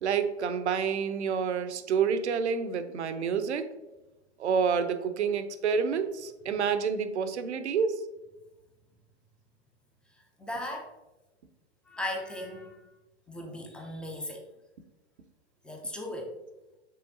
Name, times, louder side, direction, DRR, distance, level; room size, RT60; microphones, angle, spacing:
voice 1, 0.0-3.7 4.4-8.0, right 6 dB, 80° right, 10 dB, 0.6 m, -28 dB
voice 2, 10.4-10.9 11.9-12.9 13.3-14.4 15.6-16.3, left 1 dB, 5° left, 1 dB, 0.3 m, -37 dB
5.6 x 3.3 x 2.6 m, 1.0 s
hypercardioid pair, 105°, 33 cm